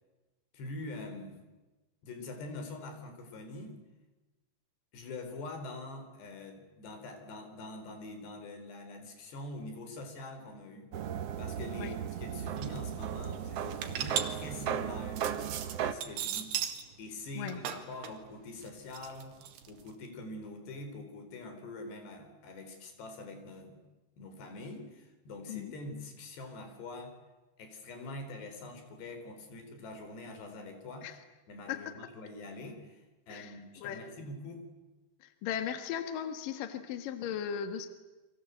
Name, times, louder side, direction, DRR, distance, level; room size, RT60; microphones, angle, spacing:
voice 1, 0.5-1.4 2.0-3.8 4.9-10.9 11.4-15.3 15.8-16.6 17.0-19.3 19.7-23.8 24.2-27.1 27.6-31.2 31.5-34.7, left 2 dB, 90° left, 7 dB, 6.1 m, -44 dB
sound 1, 10.9-15.9, right 9 dB, 65° right, 1.6 m, -36 dB
sound 2, 12.1-12.2 12.4-12.8 13.2-16.9 17.2-19.9, right 9 dB, 90° right, 4.0 m, -37 dB
voice 2, 35.2-37.9, left 8 dB, 60° left, 9 dB, 3.0 m, -37 dB
30.0 x 24.0 x 8.2 m, 1.1 s
omnidirectional pair, 4.7 m